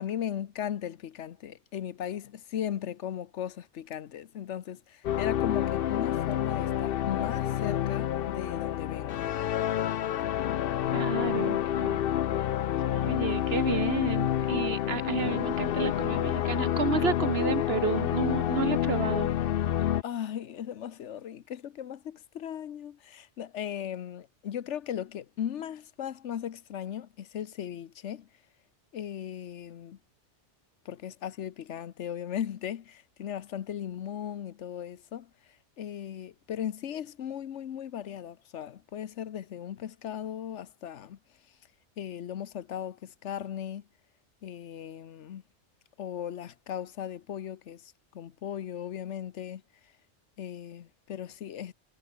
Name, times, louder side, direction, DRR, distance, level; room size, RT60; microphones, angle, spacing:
voice 1, 0.0-9.3 20.0-28.3 28.9-30.0 30.8-35.3 35.8-41.2 42.0-43.9 44.4-45.4 46.0-49.6 50.4-51.7, left 9 dB, 80° left, 1.2 m, -37 dB
sound 1, 5.0-20.0, left 11 dB, 60° left, 0.7 m, -28 dB
voice 2, 10.9-12.2 12.9-19.3, right 5 dB, 60° right, 1.6 m, -31 dB
omnidirectional pair, 1.2 m